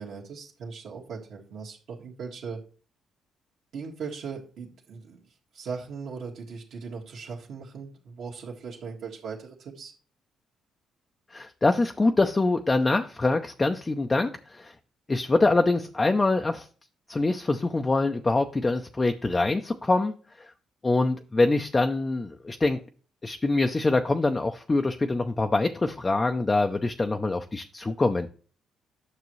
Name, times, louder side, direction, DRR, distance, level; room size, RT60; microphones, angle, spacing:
voice 1, 0.0-2.6 3.7-5.2 5.5-9.9, right 5 dB, 65° right, -4 dB, 1.8 m, -39 dB
voice 2, 11.3-14.7 15.1-16.7 17.1-20.5 20.8-22.8 23.2-28.3, left 2 dB, 20° left, 5 dB, 0.5 m, -24 dB
9.5 x 6.5 x 3.1 m, 0.39 s
cardioid pair, 130°, 0 cm